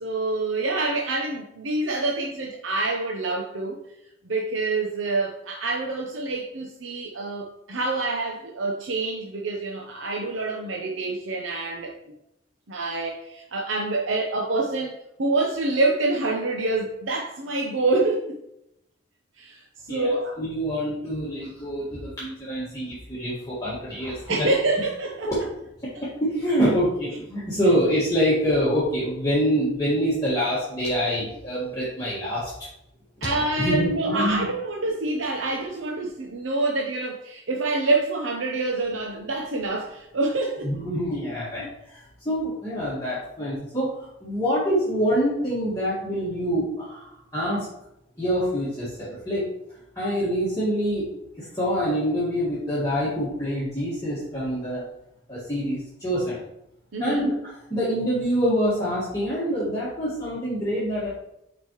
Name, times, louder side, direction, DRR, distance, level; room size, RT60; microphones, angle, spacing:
voice 1, 0.0-3.8 4.2-11.9 12.7-14.9 15.2-18.4 19.4-20.4 24.3-25.3 33.2-40.7 41.6-41.7 56.9-57.3, right 2 dB, 80° right, 0 dB, 0.8 m, -26 dB
voice 2, 20.4-24.5 25.3-25.4 25.8-32.5 33.2-34.5 40.6-42.0 42.3-43.9 44.2-47.7 48.2-49.5 50.0-51.1 51.4-54.8 55.3-56.4 57.0-61.1, equal, 20° left, -10 dB, 1.7 m, -26 dB
8.3 x 5.0 x 3.1 m, 0.83 s
head